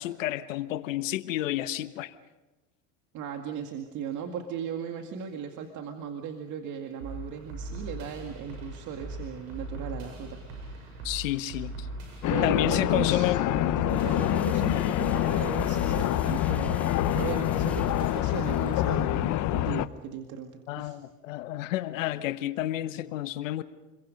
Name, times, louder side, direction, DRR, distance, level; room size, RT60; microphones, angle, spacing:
voice 1, 0.0-2.1 11.0-11.9 12.4-13.4 20.7-23.6, left 14 dB, 85° left, 11 dB, 1.2 m, -30 dB
voice 2, 3.1-11.1 11.4-11.5 12.3-13.3 13.8-21.0, right 7 dB, 50° right, 4 dB, 2.2 m, -37 dB
sound 1, 7.0-19.0, right 2 dB, 90° right, 7.8 m, -40 dB
sound 2, 12.2-19.9, left 15 dB, 50° left, 0.9 m, -26 dB
sound 3, 13.7-19.3, left 1 dB, 5° left, 2.7 m, -48 dB
30.0 x 23.0 x 5.3 m, 1.1 s
supercardioid pair, 100°, 38 cm